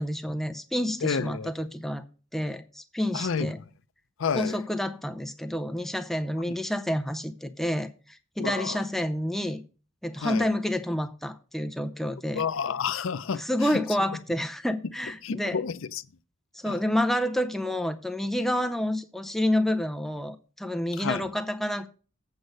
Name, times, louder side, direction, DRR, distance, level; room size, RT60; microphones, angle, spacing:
voice 1, 0.0-2.0 2.3-3.6 4.3-9.6 10.0-12.4 13.3-15.6 16.5-21.9, left 1 dB, ahead, 0.5 m, -29 dB
voice 2, 1.0-1.5 3.1-3.5 4.2-4.6 6.4-6.5 8.4-8.8 10.2-10.5 12.3-13.4 13.7-13.8 15.2-16.0 16.7-16.8 21.0-21.2, left 6 dB, 85° left, 0.5 m, -30 dB
8.1 x 5.2 x 6.5 m
head